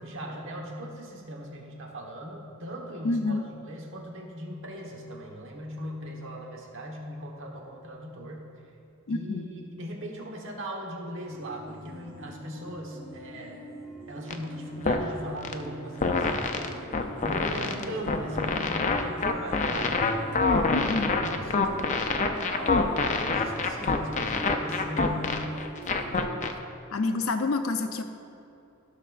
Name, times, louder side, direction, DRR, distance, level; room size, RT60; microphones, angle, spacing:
voice 1, 0.0-8.5 9.1-13.6 14.1-16.9 17.2-20.0 20.5-25.7, equal, 65° right, -1 dB, 1.3 m, -39 dB
voice 2, 3.0-3.4 9.1-9.5 20.7-21.1 26.9-28.0, left 3 dB, 80° left, 7 dB, 0.6 m, -28 dB
sound 1, 11.3-26.2, right 1 dB, 15° right, 1.4 m, -44 dB
sound 2, 14.3-14.4 14.9-15.1 15.4-15.5 16.0-26.5, left 4 dB, 35° left, 0.5 m, -26 dB
15.5 x 6.4 x 2.5 m, 2.8 s
head